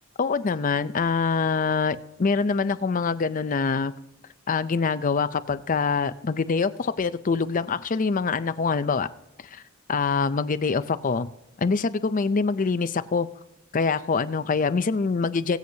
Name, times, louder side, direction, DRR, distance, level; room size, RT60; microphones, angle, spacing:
voice 1, 0.2-3.9 4.5-9.1 9.5-9.6 9.9-11.3 11.6-13.3 13.7-15.6, left 4 dB, 40° left, 13 dB, 0.5 m, -24 dB
21.5 x 7.9 x 2.8 m, 0.91 s
head